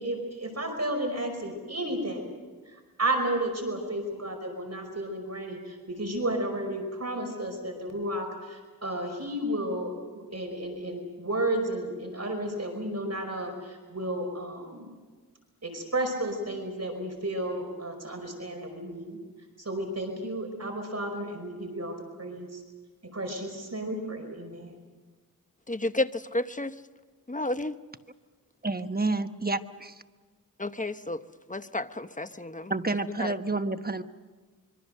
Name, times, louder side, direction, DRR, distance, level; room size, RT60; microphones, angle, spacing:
voice 1, 0.0-2.3 2.7-9.9 10.3-14.9 15.6-19.2 19.6-22.6 23.1-24.8, right 1 dB, 45° right, 3 dB, 5.3 m, -32 dB
voice 2, 25.7-26.7 27.3-27.8 30.6-31.2 31.5-32.7 33.2-33.3, left 2 dB, 20° left, 11 dB, 1.0 m, -31 dB
voice 3, 28.6-30.0 32.7-34.0, right 3 dB, 25° right, 9 dB, 1.2 m, -29 dB
25.5 x 23.5 x 6.6 m, 1.4 s
wide cardioid pair, 50°, 36 cm